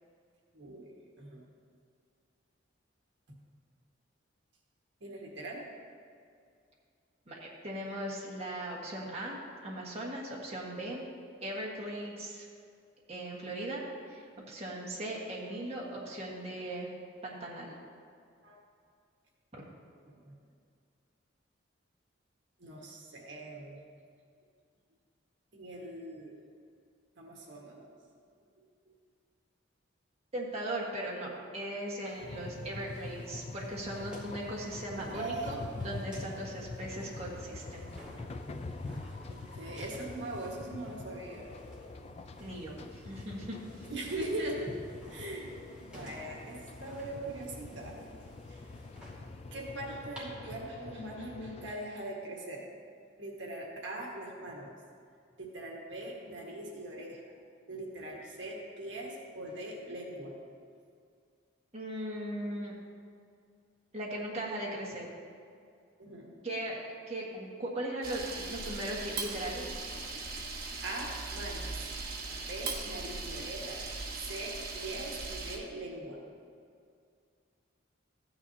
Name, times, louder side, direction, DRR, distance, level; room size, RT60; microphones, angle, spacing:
voice 1, 0.5-1.4 3.3-3.4 5.0-5.7 18.4-18.6 20.0-20.4 22.6-23.8 25.5-26.4 27.2-27.9 28.9-29.0 35.1-35.6 39.3-41.5 43.9-44.7 45.1-45.5 45.8-48.0 48.5-48.7 49.5-52.7 53.2-54.7 55.4-57.2 57.7-60.4 66.0-66.5 70.8-72.0 72.5-73.9 74.2-76.2, right 1 dB, 65° right, -2 dB, 1.6 m, -41 dB
voice 2, 7.3-11.0 11.4-12.5 13.1-16.9 17.2-17.8 19.5-19.6 30.3-37.9 42.4-43.9 61.7-62.7 63.9-65.1 66.4-66.8 67.1-69.7, right 1 dB, 35° right, -5 dB, 1.5 m, -38 dB
sound 1, 32.1-50.2, equal, 5° right, 2.3 m, -55 dB
sound 2, 32.2-51.7, left 3 dB, 30° left, 0.4 m, -45 dB
Camera, 68.0-75.6, right 3 dB, 50° right, 1.3 m, -39 dB
14.5 x 9.6 x 2.8 m, 2.3 s
head